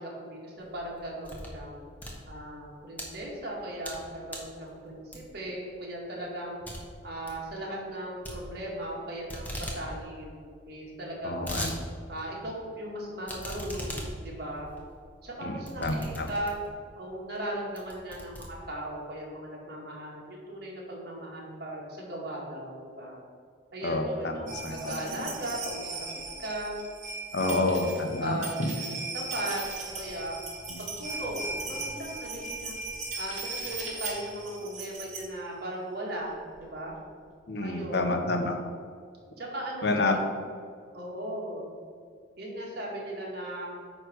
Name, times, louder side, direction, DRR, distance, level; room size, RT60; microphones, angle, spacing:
voice 1, 0.0-1.8 2.3-6.5 7.0-10.4 10.7-11.4 12.1-14.7 15.2-16.6 17.0-23.2 23.7-26.1 26.4-26.8 27.4-27.7 28.2-29.6 30.0-30.4 30.8-32.7 33.2-37.0 37.6-38.2 39.4-40.2 40.9-41.7 42.4-43.8, right 1 dB, 55° right, -3 dB, 1.9 m, -37 dB
sound 1, 0.6-1.6 1.9-3.1 3.6-4.0 4.3-4.6 5.1-5.5 5.9-6.0 6.3-6.4 6.6-6.8 7.1-7.4 8.2-9.0 9.3-9.8 10.1-10.2 10.4-10.5 11.0-11.8 12.2-12.3 13.2-16.8 17.3-17.4 17.8-19.0, equal, 10° left, 1.1 m, -39 dB
voice 2, 11.2-11.7 15.4-16.3 23.8-25.2 27.3-28.7 30.7-30.8 37.5-38.6 39.8-40.1, left 2 dB, 60° left, 4 dB, 0.9 m, -29 dB
sound 2, 24.5-35.3 36.3-36.4 36.6-36.7, right 3 dB, 40° right, 1.6 m, -38 dB
9.1 x 3.3 x 6.3 m, 2.1 s
head